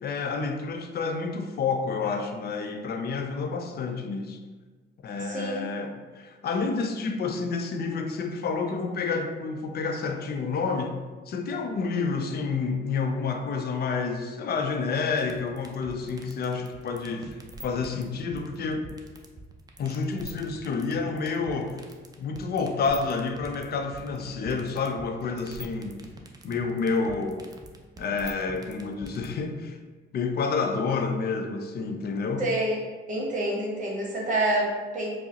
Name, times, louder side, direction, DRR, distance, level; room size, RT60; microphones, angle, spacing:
voice 1, 0.0-4.4 5.0-11.0 11.3-18.9 19.8-21.8 22.2-26.0 26.4-27.4 28.0-29.8 30.1-32.4, left 4 dB, 55° left, 5 dB, 0.4 m, -29 dB
voice 2, 5.2-5.7 32.4-32.8 33.1-35.1, right 1 dB, 40° right, -3 dB, 1.0 m, -27 dB
sound 1, 15.1-29.3, right 2 dB, 20° right, 0.4 m, -44 dB
4.5 x 2.0 x 2.8 m, 1.4 s
cardioid pair, 90°, 20 cm